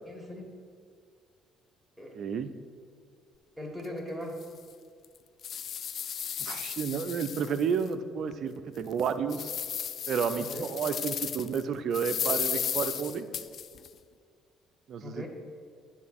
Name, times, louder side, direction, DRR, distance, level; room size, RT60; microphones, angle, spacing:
voice 1, 0.1-0.5 2.0-2.2 3.6-4.4 10.4-10.7 15.0-15.3, left 1 dB, 5° right, 0 dB, 1.9 m, -39 dB
voice 2, 2.1-2.5 6.4-9.5 10.1-13.3 14.9-15.3, right 6 dB, 60° right, 10 dB, 0.5 m, -31 dB
sound 1, 3.8-3.9 4.4-4.5 5.0-7.9 8.3-8.4 8.9-11.6 11.9-13.9, left 8 dB, 55° left, 0.3 m, -34 dB
10.0 x 3.8 x 6.3 m, 2.1 s
hypercardioid pair, 55°, 0 cm